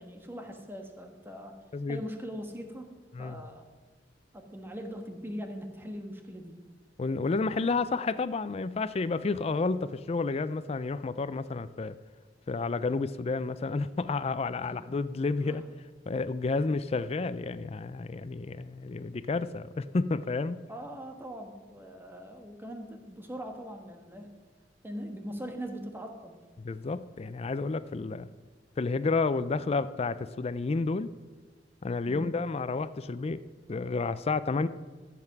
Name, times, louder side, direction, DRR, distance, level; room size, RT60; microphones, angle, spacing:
voice 1, 0.0-1.6 1.9-3.7 4.3-6.6 14.6-14.7 15.4-15.6 16.5-16.6 20.7-24.3 24.8-26.4 32.1-32.3, equal, 15° right, 4 dB, 1.3 m, -41 dB
voice 2, 1.7-2.0 3.1-3.4 7.0-12.0 12.5-15.7 16.1-20.6 26.6-28.3 28.8-31.1 31.8-33.4 33.7-34.7, left 3 dB, 35° left, 14 dB, 0.4 m, -30 dB
14.0 x 7.8 x 5.9 m, 1.4 s
head